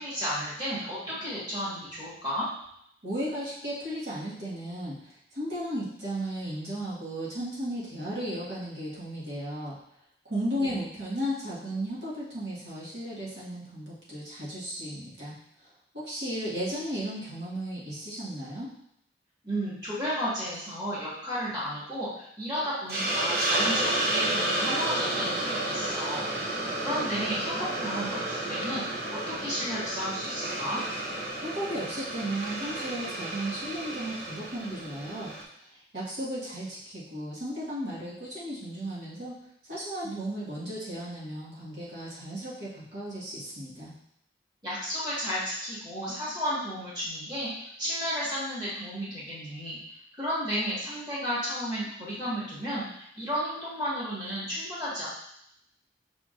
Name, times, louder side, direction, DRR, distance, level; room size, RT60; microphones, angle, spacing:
voice 1, 0.0-2.5 10.5-10.7 19.4-26.3 26.8-28.8 29.1-30.8 40.0-40.2 44.6-49.8 50.2-55.1, equal, 25° right, -9 dB, 1.6 m, -33 dB
voice 2, 3.0-9.8 10.3-15.3 15.9-18.7 31.4-35.3 35.7-39.3 39.7-43.9, equal, 75° right, -8 dB, 1.7 m, -35 dB
Hiss, 22.9-35.4, right 1 dB, 55° right, 0.8 m, -31 dB
5.6 x 3.7 x 2.5 m, 0.74 s
head